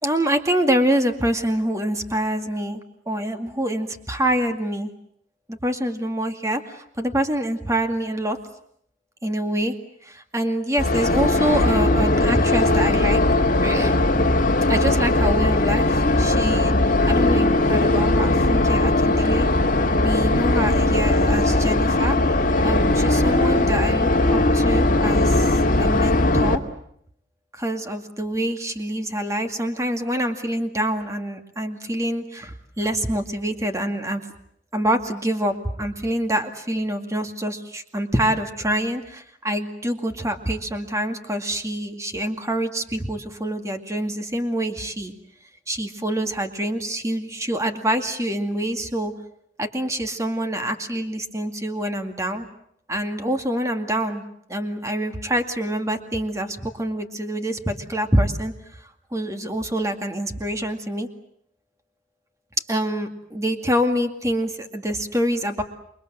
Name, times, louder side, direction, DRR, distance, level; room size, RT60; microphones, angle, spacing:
voice 1, 0.0-4.9 5.5-8.4 9.2-9.7 10.0-13.2 13.6-14.1 14.7-19.5 20.0-22.2 22.6-26.6 27.5-34.2 34.7-45.1 45.7-49.1 49.6-52.5 52.9-54.2 54.5-58.8 59.1-61.1 62.7-65.6, right 1 dB, 15° right, 6 dB, 2.2 m, -26 dB
sound 1, 10.8-26.6, left 2 dB, 45° left, 2.3 m, -19 dB
28.5 x 23.0 x 7.8 m, 0.69 s
head